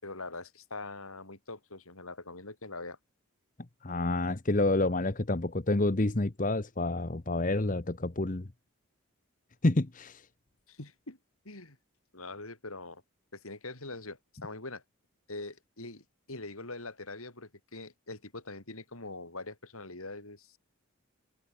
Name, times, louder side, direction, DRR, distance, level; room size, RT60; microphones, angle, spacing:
voice 1, 0.0-3.0 10.7-11.2 11.4-11.8 12.1-13.0 13.3-14.8 15.3-20.6, left 2 dB, 80° left, 5.9 m, -43 dB
voice 2, 3.8-8.5 9.6-10.2, left 2 dB, 35° left, 1.0 m, -28 dB
head